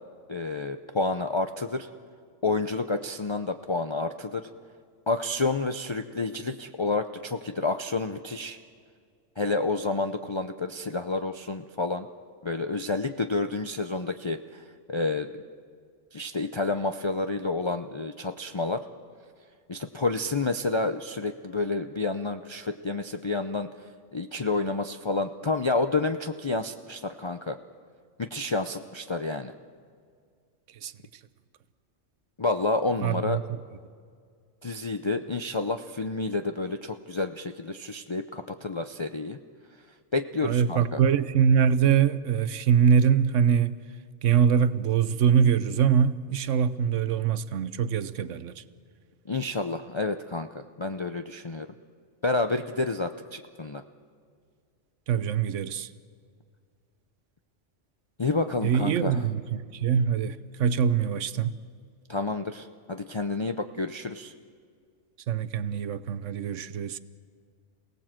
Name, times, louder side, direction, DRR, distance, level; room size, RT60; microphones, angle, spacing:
voice 1, 0.3-1.9 2.4-4.5 5.1-8.6 9.4-12.1 12.4-15.3 16.1-18.8 19.7-23.7 24.1-27.6 28.2-29.5 32.4-33.4 34.6-39.4 40.1-41.0 49.3-51.7 52.2-53.8 58.2-59.2 62.1-64.3, left 3 dB, 35° left, 0.5 m, -29 dB
voice 2, 33.0-33.6 40.4-43.8 44.2-48.6 55.1-55.9 58.6-61.6 65.3-67.0, right 7 dB, 80° right, 1.1 m, -23 dB
28.0 x 18.0 x 7.6 m
omnidirectional pair, 1.3 m